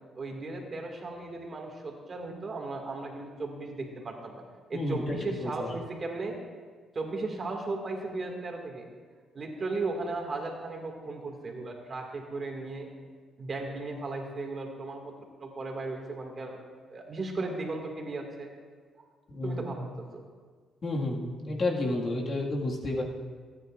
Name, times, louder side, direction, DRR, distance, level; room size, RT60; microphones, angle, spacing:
voice 1, 0.2-4.4 4.7-6.4 6.9-8.9 9.3-12.9 13.4-15.1 15.4-18.5 19.4-20.2, right 3 dB, 40° right, 1 dB, 2.1 m, -36 dB
voice 2, 4.7-5.7 19.3-19.7 20.8-23.0, left 2 dB, 45° left, -1 dB, 1.9 m, -31 dB
25.0 x 9.7 x 2.5 m, 1.6 s
cardioid pair, 90°, 0 cm